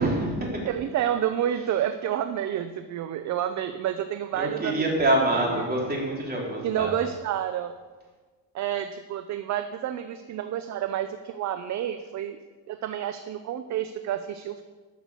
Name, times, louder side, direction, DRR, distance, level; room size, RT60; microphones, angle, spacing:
voice 1, 0.0-0.7 4.3-6.9, right 1 dB, 20° right, -2 dB, 3.2 m, -26 dB
voice 2, 0.6-4.9 5.4-5.6 6.6-7.8 8.5-12.4 12.7-14.6, right 10 dB, 45° right, 10 dB, 0.6 m, -29 dB
12.0 x 6.7 x 6.8 m, 1.4 s
cardioid pair, 135°, 40 cm